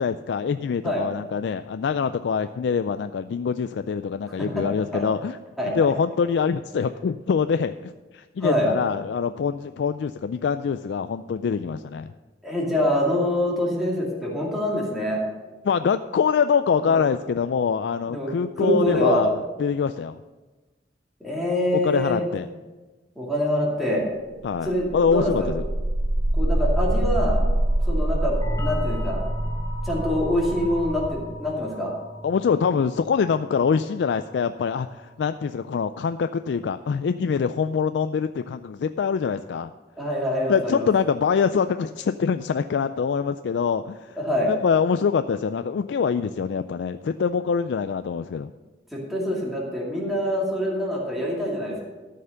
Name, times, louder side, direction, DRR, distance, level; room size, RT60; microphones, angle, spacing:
voice 1, 0.0-5.4 5.7-12.1 15.6-20.2 21.8-22.5 24.4-25.6 32.2-39.7 40.5-44.2 44.4-48.5, left 6 dB, 75° left, 10 dB, 0.3 m, -24 dB
voice 2, 4.3-4.6 4.9-5.0 5.6-5.7 8.4-8.7 12.4-15.2 16.8-17.0 18.1-18.3 18.6-19.3 21.2-22.3 23.2-24.0 24.6-25.5 26.3-27.4 27.9-29.2 29.8-31.9 40.0-40.9 44.2-44.5 48.9-51.8, equal, ahead, -4 dB, 2.4 m, -25 dB
sound 1, 24.5-34.5, right 1 dB, 60° right, 1.0 m, -27 dB
sound 2, 28.4-33.9, left 1 dB, 20° left, 1.4 m, -37 dB
13.0 x 5.7 x 6.5 m, 1.2 s
head